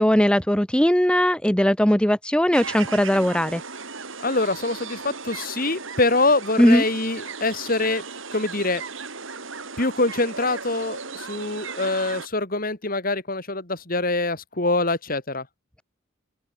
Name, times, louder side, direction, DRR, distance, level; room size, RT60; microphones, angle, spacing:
voice 1, 0.0-3.6 6.6-6.8, equal, 5° left, 0.9 m, -19 dB
sound 1, 2.5-12.3, right 5 dB, 65° right, 4.6 m, -36 dB
voice 2, 4.2-8.0 8.3-8.8 9.8-15.5, left 2 dB, 40° left, 3.1 m, -24 dB
open air
head